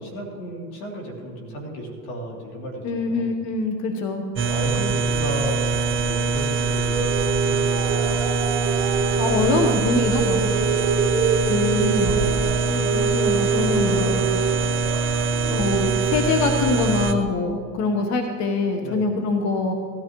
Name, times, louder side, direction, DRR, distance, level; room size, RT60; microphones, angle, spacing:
voice 1, 0.0-3.3 4.5-8.2 10.6-11.0 18.8-19.1, right 1 dB, 75° left, 0 dB, 3.1 m, -33 dB
voice 2, 2.8-4.3 8.6-8.7 9.2-10.5 11.5-12.2 12.7-14.2 15.4-19.7, left 3 dB, 40° left, 4 dB, 1.2 m, -24 dB
sound 1, 4.4-17.1, right 4 dB, 25° right, 0.8 m, -23 dB
sound 2, 6.9-16.2, right 6 dB, 60° right, 2.1 m, -26 dB
19.0 x 13.5 x 3.1 m, 2.1 s
supercardioid pair, 110°, 44 cm